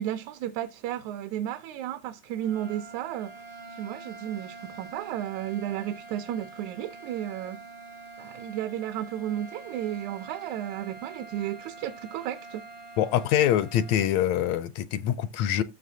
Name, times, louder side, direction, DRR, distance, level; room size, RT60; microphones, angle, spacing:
voice 1, 0.0-7.7 8.2-12.6, right 11 dB, 80° right, 1.9 m, -33 dB
sound 1, 2.3-14.1, right 3 dB, 55° right, 0.4 m, -46 dB
voice 2, 13.0-15.6, left 11 dB, 75° left, 1.7 m, -24 dB
14.0 x 6.5 x 2.7 m
omnidirectional pair, 3.5 m